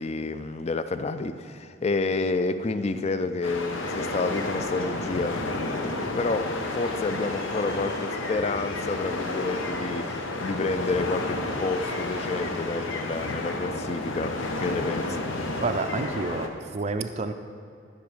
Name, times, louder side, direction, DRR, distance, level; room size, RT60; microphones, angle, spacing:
voice 1, 0.0-15.3, left 3 dB, 35° left, 10 dB, 0.4 m, -30 dB
sound 1, 3.4-16.5, left 2 dB, 85° left, 1.0 m, -31 dB
voice 2, 15.6-17.3, right 3 dB, 35° right, 7 dB, 0.4 m, -29 dB
12.5 x 6.2 x 5.0 m, 2.5 s
head